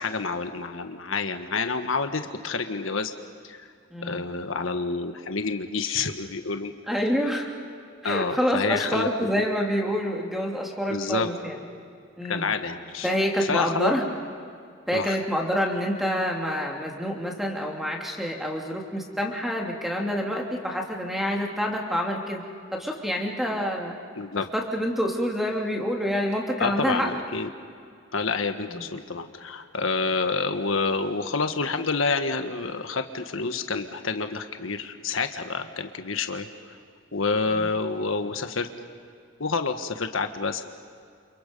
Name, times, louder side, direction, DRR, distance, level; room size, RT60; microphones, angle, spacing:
voice 1, 0.0-3.1 3.4-3.7 4.0-6.7 8.0-9.1 10.9-11.3 12.2-13.1 13.4-13.9 14.9-15.2 24.2-24.5 26.6-27.5 28.1-36.8 37.1-38.7 39.4-40.6, left 4 dB, 85° left, 7 dB, 1.4 m, -28 dB
voice 2, 3.9-4.3 6.9-7.5 8.0-11.6 12.2-12.5 13.0-14.0 14.9-22.4 22.7-23.9 24.3-27.1 28.7-28.8, equal, ahead, 0 dB, 3.0 m, -27 dB
29.5 x 28.0 x 5.5 m, 2.3 s
head